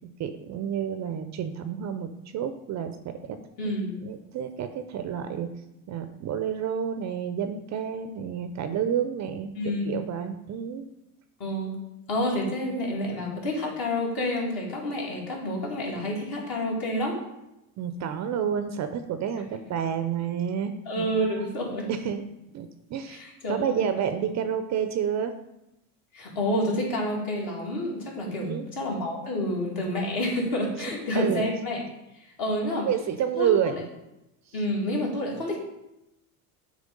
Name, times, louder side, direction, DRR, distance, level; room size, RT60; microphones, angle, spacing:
voice 1, 0.2-3.4 3.6-3.7 4.0-5.5 5.9-10.9 17.8-21.1 21.4-22.2 22.5-23.2 23.5-25.3 28.2-28.6 30.8-31.5 32.7-33.8, right 8 dB, 40° right, 9 dB, 0.5 m, -30 dB
voice 2, 3.6-3.9 9.6-10.0 11.4-11.7 12.1-17.2 20.9-21.9 23.1-23.9 26.1-31.8 32.4-32.9 33.4-33.8 34.5-35.6, left 1 dB, 50° left, -2 dB, 2.3 m, -29 dB
7.4 x 3.3 x 5.2 m, 0.90 s
supercardioid pair, 90°, 46 cm